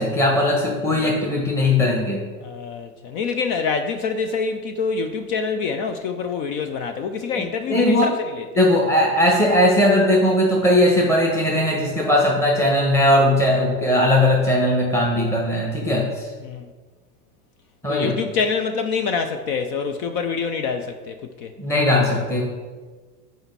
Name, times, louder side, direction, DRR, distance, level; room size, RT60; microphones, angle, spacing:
voice 1, 0.0-2.2 7.3-8.0 8.6-16.3 17.8-18.2 21.6-22.5, left 1 dB, 5° left, -3 dB, 1.1 m, -19 dB
voice 2, 0.9-1.2 2.4-8.5 16.4-16.7 17.9-21.5, left 5 dB, 40° left, 8 dB, 0.4 m, -26 dB
5.6 x 4.4 x 5.3 m, 1.4 s
hypercardioid pair, 95°, 47 cm